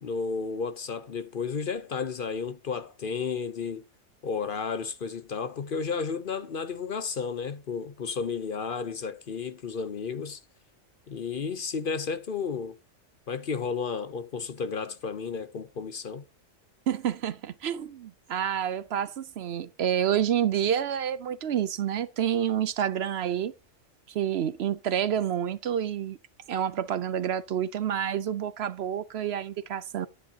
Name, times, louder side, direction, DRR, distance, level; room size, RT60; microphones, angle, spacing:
voice 1, 0.0-3.8 4.2-10.4 11.1-12.8 13.3-16.2, left 5 dB, 50° left, 0.8 m, -32 dB
voice 2, 16.9-23.5 24.1-26.2 26.5-30.1, right 9 dB, 65° right, 0.8 m, -28 dB
10.0 x 10.0 x 2.8 m
omnidirectional pair, 1.3 m